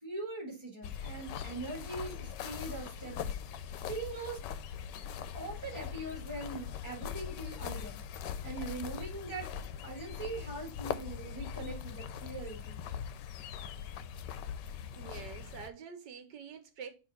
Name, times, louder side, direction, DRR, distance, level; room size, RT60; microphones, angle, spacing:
voice 1, 0.0-3.3 3.9-4.4 5.3-8.0 8.4-9.5 9.8-12.8, right 3 dB, 15° right, 1.9 m, -41 dB
sound 1, 0.8-15.7, left 8 dB, 90° left, 1.2 m, -41 dB
voice 2, 14.9-16.9, right 7 dB, 80° right, 1.5 m, -46 dB
6.3 x 3.3 x 5.5 m
omnidirectional pair, 1.8 m